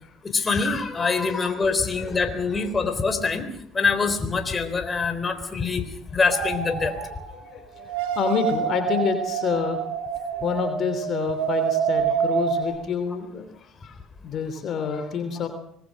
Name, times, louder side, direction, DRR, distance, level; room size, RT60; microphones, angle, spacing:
voice 1, 0.2-3.5 3.7-5.9 6.1-6.9, left 4 dB, 30° left, 9 dB, 3.9 m, -24 dB
sound 1, 6.3-7.4 7.8-12.6, right 7 dB, 80° right, 5.8 m, -27 dB
voice 2, 7.3-9.8 10.4-14.0 14.2-15.5, left 6 dB, 55° left, 7 dB, 3.1 m, -28 dB
24.5 x 20.5 x 6.4 m, 0.68 s
hypercardioid pair, 70°, 0 cm